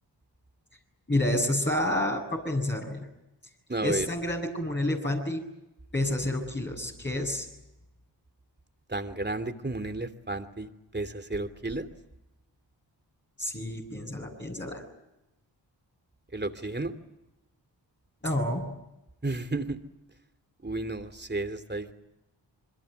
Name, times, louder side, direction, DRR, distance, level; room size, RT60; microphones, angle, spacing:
voice 1, 1.1-3.0 3.8-5.4 5.9-7.5 13.4-14.8 18.2-18.6, left 1 dB, 25° left, -2 dB, 7.0 m, -29 dB
voice 2, 3.7-4.1 8.9-10.7 10.9-11.9 16.3-16.9 19.2-19.8 20.6-21.9, right 2 dB, 25° right, 9 dB, 2.9 m, -32 dB
27.5 x 22.0 x 8.2 m, 0.94 s
cardioid pair, 45°, 43 cm